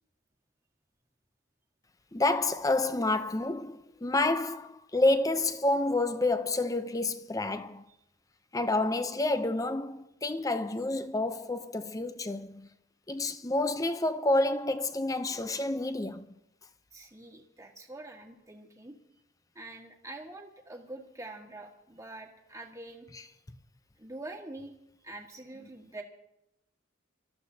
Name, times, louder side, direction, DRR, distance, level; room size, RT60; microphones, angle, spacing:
voice 1, 2.1-7.8 8.5-12.7 13.1-16.3, left 2 dB, 15° left, 0.6 m, -29 dB
voice 2, 16.9-19.0 19.5-23.1 24.0-24.7 25.0-26.0, right 2 dB, 15° right, 1.6 m, -45 dB
26.5 x 13.5 x 2.8 m
head